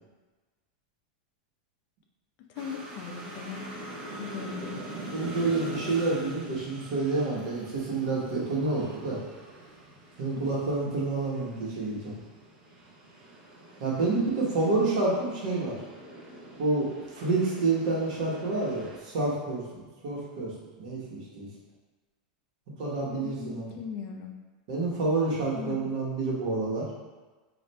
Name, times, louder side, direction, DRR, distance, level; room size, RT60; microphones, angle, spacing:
voice 1, 2.5-3.9 4.2-4.8 10.4-10.5 10.9-11.0 23.1-24.3 25.5-25.8, left 6 dB, 40° left, 3 dB, 0.4 m, -39 dB
sound 1, 2.6-19.0, right 1 dB, 30° right, 0.7 m, -44 dB
voice 2, 5.1-9.2 10.2-12.2 13.8-15.8 16.6-16.9 17.1-19.6 20.0-20.5 20.8-21.5 22.8-23.8 24.7-26.8, right 3 dB, 55° right, -5 dB, 1.2 m, -28 dB
3.2 x 2.5 x 4.2 m, 1.3 s
supercardioid pair, 155°, 5 cm